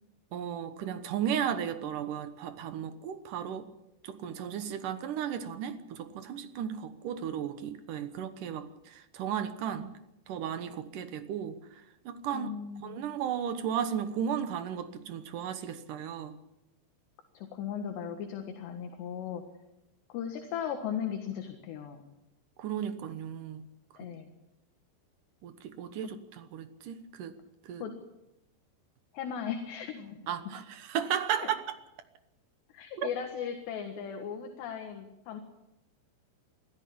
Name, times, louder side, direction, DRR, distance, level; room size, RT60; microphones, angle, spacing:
voice 1, 0.3-3.6 4.0-9.9 10.3-11.5 12.1-12.5 12.8-16.3 22.6-23.6 25.4-27.3 27.7-27.8 30.3-31.6 33.0-33.1, right 9 dB, 70° right, 10 dB, 2.0 m, -34 dB
voice 2, 12.3-13.1 17.3-19.4 20.1-22.0 24.0-24.3 27.8-27.9 29.1-30.2 31.4-31.5 32.7-35.4, left 8 dB, 70° left, 5 dB, 3.7 m, -37 dB
24.0 x 14.5 x 8.6 m, 0.91 s
omnidirectional pair, 5.2 m